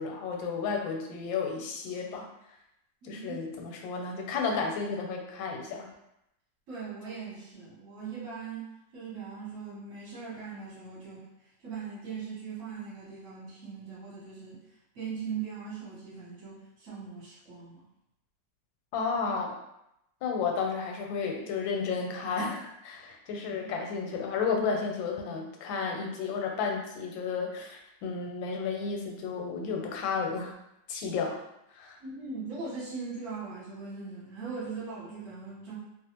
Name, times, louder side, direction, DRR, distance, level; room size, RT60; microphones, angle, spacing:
voice 1, 0.0-2.3 3.0-5.9 18.9-19.5 20.2-30.5 30.9-31.4 31.7-32.0, left 5 dB, 85° left, 2 dB, 1.3 m, -32 dB
voice 2, 3.0-3.4 6.7-8.7 8.9-11.3 11.6-14.6 14.9-17.8 23.6-23.7 32.0-35.8, right 5 dB, 50° right, -8 dB, 1.2 m, -40 dB
3.0 x 2.3 x 2.8 m, 0.85 s
omnidirectional pair, 2.0 m